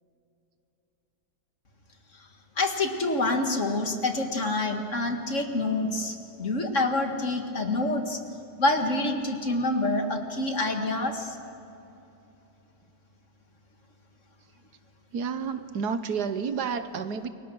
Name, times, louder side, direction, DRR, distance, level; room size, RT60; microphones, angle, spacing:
voice 1, 2.6-8.2 8.6-11.4, left 2 dB, 45° left, 4 dB, 2.1 m, -27 dB
voice 2, 15.1-17.3, right 6 dB, 70° right, 10 dB, 1.5 m, -30 dB
29.0 x 23.5 x 6.3 m, 2.9 s
omnidirectional pair, 1.9 m